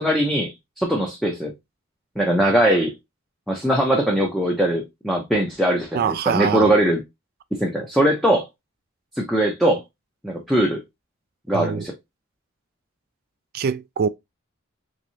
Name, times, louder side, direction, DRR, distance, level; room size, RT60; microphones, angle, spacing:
voice 1, 0.0-1.5 2.2-2.9 3.5-7.0 7.5-8.5 9.2-9.8 10.2-10.8 11.5-11.9, right 1 dB, ahead, 0.6 m, -21 dB
voice 2, 5.9-6.7 11.5-11.9 13.5-14.1, right 6 dB, 45° right, 0.3 m, -24 dB
3.5 x 3.1 x 2.6 m
head